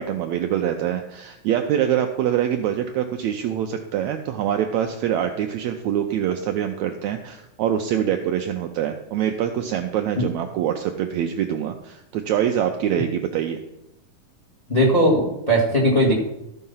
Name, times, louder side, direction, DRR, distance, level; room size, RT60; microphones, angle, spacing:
voice 1, 0.0-13.6, right 10 dB, 80° right, 5 dB, 1.6 m, -24 dB
voice 2, 14.7-16.1, equal, 20° left, -1 dB, 1.1 m, -18 dB
13.5 x 5.5 x 5.6 m, 0.87 s
omnidirectional pair, 3.8 m